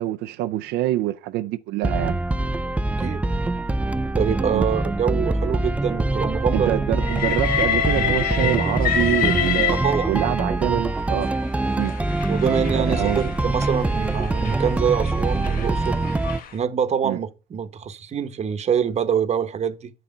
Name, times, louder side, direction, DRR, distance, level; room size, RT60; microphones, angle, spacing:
voice 1, 0.0-2.2 4.5-4.7 6.5-9.8 10.1-11.3 11.8-11.9 12.7-13.3 17.0-17.2, right 15 dB, 85° right, 0.5 m, -25 dB
sound 1, 1.8-16.4, right 2 dB, 10° right, 0.3 m, -24 dB
voice 2, 4.1-7.0 9.8-10.1 12.3-16.0 16.5-19.9, right 7 dB, 40° right, 1.0 m, -25 dB
Train, 7.0-10.4 11.3-16.5, left 9 dB, 60° left, 1.0 m, -28 dB
9.2 x 4.1 x 5.4 m
cardioid pair, 110°, 17 cm